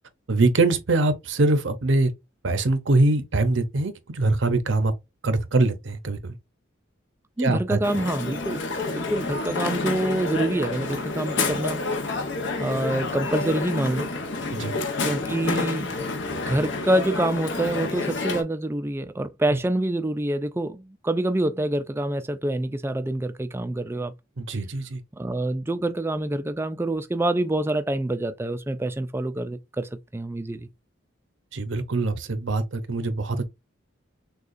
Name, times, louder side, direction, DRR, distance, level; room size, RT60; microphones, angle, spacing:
voice 1, 0.3-2.1 2.4-4.9 5.2-6.4 7.4-7.8 14.5-14.7 19.5-19.6 24.4-25.0 31.5-33.4, right 2 dB, 65° right, 0.7 m, -23 dB
voice 2, 7.4-8.6 8.9-11.8 12.6-14.1 15.0-16.0 16.5-24.1 25.2-30.7, right 1 dB, 10° right, 0.3 m, -26 dB
Crowd, 7.8-18.4, left 3 dB, 65° left, 0.9 m, -29 dB
6.4 x 2.4 x 2.5 m
head